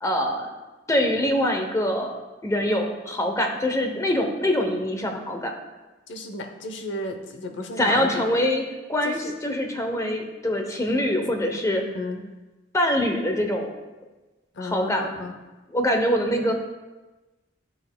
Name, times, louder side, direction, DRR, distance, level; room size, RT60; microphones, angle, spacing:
voice 1, 0.0-0.5 0.9-2.1 2.4-5.5 7.8-8.6 8.9-11.8 12.7-13.7 14.6-15.1 15.7-16.5, left 1 dB, 15° left, 4 dB, 0.7 m, -24 dB
voice 2, 6.1-8.2 9.0-9.3 11.9-12.2 14.6-15.3, left 1 dB, 65° left, 5 dB, 0.7 m, -33 dB
10.0 x 6.4 x 2.2 m, 1.1 s
head